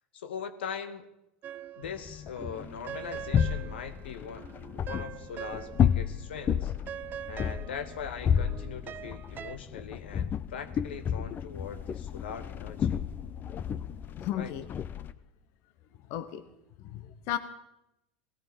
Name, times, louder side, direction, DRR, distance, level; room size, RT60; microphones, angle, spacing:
voice 1, 0.1-1.1 1.8-6.7 7.3-13.0 14.3-14.5, left 7 dB, 75° left, 1.2 m, -41 dB
sound 1, 1.4-2.1 2.4-6.1 6.4-9.6, right 10 dB, 35° right, 0.6 m, -43 dB
sound 2, 1.8-15.1, left 8 dB, 35° left, 0.7 m, -32 dB
voice 2, 14.2-14.7 16.1-16.5 16.8-17.4, left 11 dB, 55° left, 1.0 m, -34 dB
18.5 x 17.0 x 4.5 m
hypercardioid pair, 80°, 6 cm